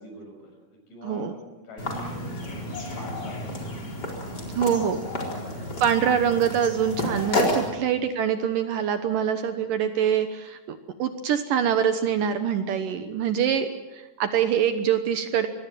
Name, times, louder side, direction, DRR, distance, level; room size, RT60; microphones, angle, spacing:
voice 1, 0.0-2.7 2.9-3.7 4.3-4.6 5.2-6.1 7.6-7.8 9.5-9.7 12.9-13.4, left 1 dB, 55° left, 3 dB, 7.7 m, -45 dB
sound 1, 1.8-7.7, left 1 dB, 25° left, 4.5 m, -30 dB
voice 2, 4.6-5.0 5.8-15.5, right 8 dB, 70° right, 9 dB, 2.5 m, -24 dB
25.5 x 22.0 x 7.5 m, 1.1 s
omnidirectional pair, 4.5 m